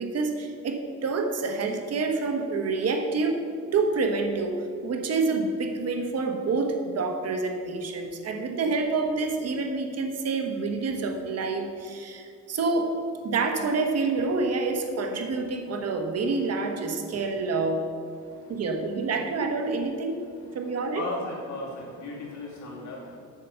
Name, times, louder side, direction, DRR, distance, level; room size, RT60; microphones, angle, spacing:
voice 1, 0.0-3.4 3.7-13.0 13.2-17.9 18.5-20.2 20.5-21.1, right 3 dB, 55° right, 4 dB, 1.3 m, -27 dB
voice 2, 20.9-23.2, left 2 dB, 70° left, -3 dB, 2.9 m, -36 dB
8.5 x 7.0 x 6.9 m, 2.5 s
cardioid pair, 110°, 30 cm